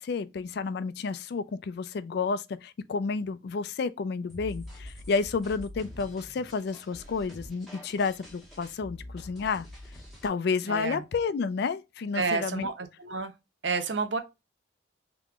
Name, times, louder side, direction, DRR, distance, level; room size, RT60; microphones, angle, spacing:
voice 1, 0.0-9.7 10.2-12.7, left 4 dB, 55° left, 0.3 m, -31 dB
sound 1, 4.3-10.3, left 1 dB, ahead, 1.2 m, -45 dB
voice 2, 10.7-11.0 12.1-13.3 13.6-14.2, right 4 dB, 65° right, 0.6 m, -30 dB
3.6 x 2.9 x 2.3 m
head